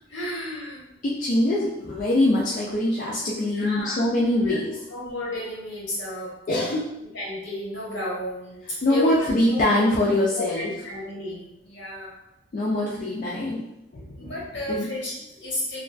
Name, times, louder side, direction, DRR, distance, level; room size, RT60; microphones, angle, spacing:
voice 1, 0.1-0.8 3.3-4.0 4.4-4.6 4.9-6.3 7.0-9.3 9.5-9.9 10.3-12.2 14.2-15.8, left 1 dB, 70° left, -6 dB, 1.0 m, -33 dB
voice 2, 1.0-4.9 6.5-6.9 8.8-10.7 12.5-13.6 13.9-14.3 14.7-14.9, left 1 dB, 45° left, -6 dB, 0.3 m, -23 dB
2.4 x 2.2 x 2.3 m, 0.87 s
head